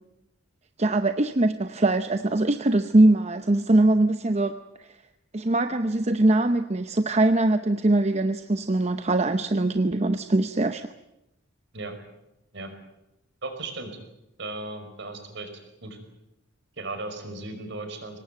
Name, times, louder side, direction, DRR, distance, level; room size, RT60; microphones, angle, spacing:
voice 1, 0.8-4.5 4.8-4.9 5.3-10.9, right 2 dB, 35° right, 9 dB, 0.8 m, -22 dB
voice 2, 13.4-14.0 14.4-15.5 15.8-16.0 16.8-18.2, right 2 dB, 60° right, 6 dB, 5.3 m, -36 dB
24.0 x 19.5 x 9.0 m, 0.89 s
head